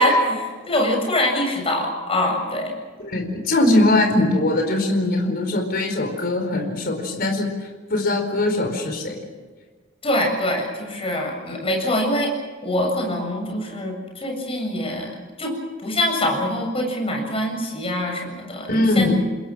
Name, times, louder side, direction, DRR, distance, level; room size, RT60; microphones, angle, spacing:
voice 1, 0.0-2.8 10.0-12.3 12.6-15.1 15.4-15.6 15.8-19.1, left 1 dB, 30° left, 2 dB, 7.6 m, -24 dB
voice 2, 3.0-9.3 18.7-19.1, left 2 dB, 50° left, 3 dB, 4.6 m, -21 dB
29.5 x 21.0 x 6.3 m, 1.4 s
head